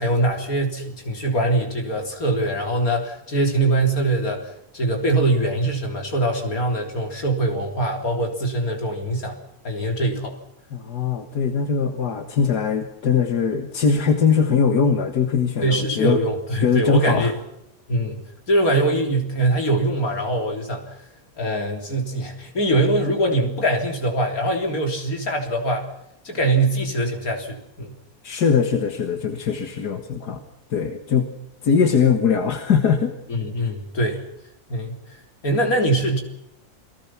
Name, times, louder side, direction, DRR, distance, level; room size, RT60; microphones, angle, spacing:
voice 1, 0.0-9.4 9.6-10.4 15.6-17.4 17.9-21.0 21.4-25.9 26.2-27.9 33.3-34.2 34.7-36.2, right 1 dB, 65° left, 3 dB, 4.0 m, -23 dB
voice 2, 10.7-16.2 16.6-17.3 28.2-30.4 30.7-31.3 31.6-33.1 33.6-33.7, left 6 dB, 85° left, 5 dB, 2.1 m, -21 dB
28.0 x 19.0 x 6.0 m, 0.83 s
omnidirectional pair, 1.6 m